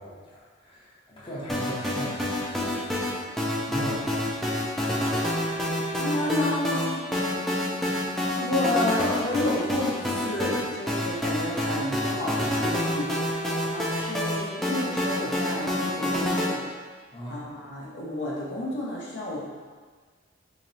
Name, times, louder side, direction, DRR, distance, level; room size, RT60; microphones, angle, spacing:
voice 1, 0.0-3.2 3.7-4.1 17.1-17.4, equal, 25° left, -8 dB, 0.8 m, -38 dB
sound 1, 1.5-16.5, left 1 dB, ahead, 0.3 m, -28 dB
voice 2, 6.0-7.0 8.4-16.6 17.3-19.4, left 1 dB, 60° left, -6 dB, 0.8 m, -31 dB
3.0 x 2.9 x 4.0 m, 1.5 s
head